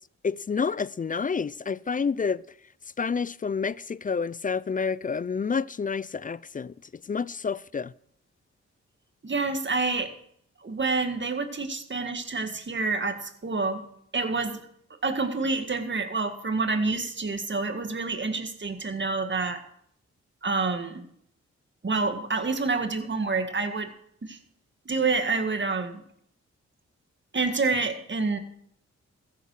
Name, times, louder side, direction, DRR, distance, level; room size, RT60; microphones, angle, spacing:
voice 1, 0.2-2.4 3.0-6.7 7.1-7.9, left 5 dB, 30° left, 0.4 m, -29 dB
voice 2, 9.2-10.1 10.6-13.8 14.1-14.6 15.0-19.6 20.4-21.0 21.8-23.9 24.2-24.4 24.9-26.0 27.3-28.4, right 3 dB, 40° right, 1.9 m, -28 dB
14.5 x 7.6 x 6.3 m
supercardioid pair, 50°, 29 cm